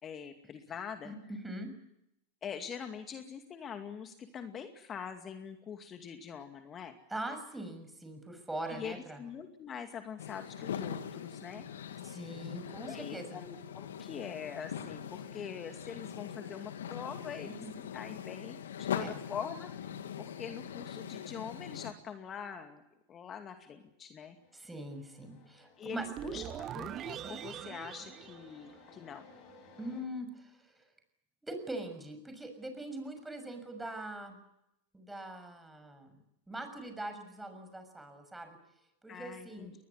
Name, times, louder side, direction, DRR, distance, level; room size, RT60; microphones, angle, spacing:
voice 1, 0.0-1.1 2.4-7.0 8.7-11.7 12.8-17.6 17.9-19.9 20.2-22.8 23.1-24.4 25.8-29.3 39.1-39.7, left 7 dB, 30° left, 6 dB, 2.4 m, -44 dB
voice 2, 1.0-1.7 7.1-9.2 12.0-13.4 17.4-17.7 19.0-19.2 24.5-26.0 29.8-30.8 31.4-34.4 34.9-36.2 36.5-38.6 39.0-39.7, right 1 dB, 10° right, 7 dB, 6.5 m, -42 dB
sound 1, 10.2-21.9, left 8 dB, 75° left, 2.0 m, -42 dB
The Kill, 24.2-30.0, left 3 dB, 50° left, 7.8 m, -59 dB
sound 2, 26.0-29.2, right 11 dB, 35° right, 1.1 m, -42 dB
22.0 x 20.5 x 9.8 m, 0.81 s
hypercardioid pair, 95°, 0 cm